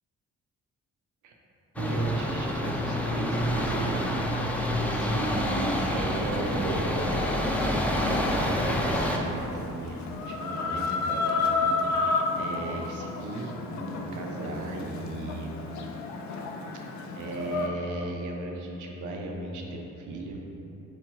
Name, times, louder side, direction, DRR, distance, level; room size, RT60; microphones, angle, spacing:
sound 1, 1.8-9.2, equal, 5° left, 0.4 m, -27 dB
voice 1, 1.8-7.1 7.6-11.8 12.4-15.6 17.1-20.5, right 2 dB, 80° right, 1 dB, 0.7 m, -36 dB
Chicken rooster, 6.0-17.7, left 3 dB, 65° left, 0.5 m, -32 dB
3.5 x 3.0 x 4.5 m, 3.0 s
cardioid pair, 90°, 30 cm